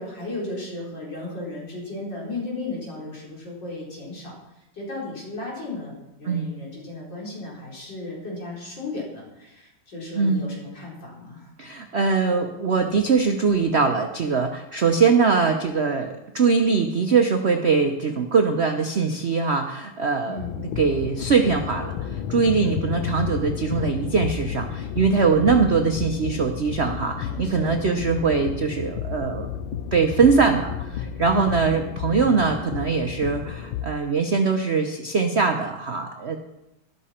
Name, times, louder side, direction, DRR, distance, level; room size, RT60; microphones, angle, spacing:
voice 1, 0.0-4.3 4.7-11.5 20.3-20.7 22.6-22.9 25.2-25.5 27.2-28.4 31.3-31.8, left 2 dB, 60° left, -4 dB, 4.9 m, -35 dB
voice 2, 10.1-10.5 11.6-20.4 20.8-29.5 29.9-36.4, right 5 dB, 50° right, 5 dB, 0.8 m, -22 dB
sound 1, 20.4-33.9, left 9 dB, 85° left, 1.5 m, -31 dB
13.5 x 12.0 x 4.4 m, 0.95 s
omnidirectional pair, 2.2 m